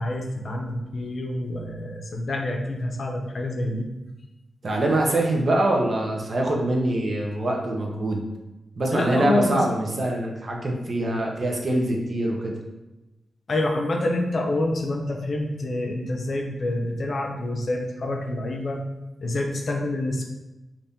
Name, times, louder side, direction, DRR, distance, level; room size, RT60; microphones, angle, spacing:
voice 1, 0.0-3.9 8.9-9.6 13.5-18.8 19.2-20.3, left 1 dB, 60° left, 2 dB, 0.5 m, -27 dB
voice 2, 4.6-8.2 8.8-12.5, right 1 dB, 50° right, 0 dB, 0.6 m, -24 dB
2.7 x 2.5 x 3.4 m, 1.0 s
cardioid pair, 75°, 0 cm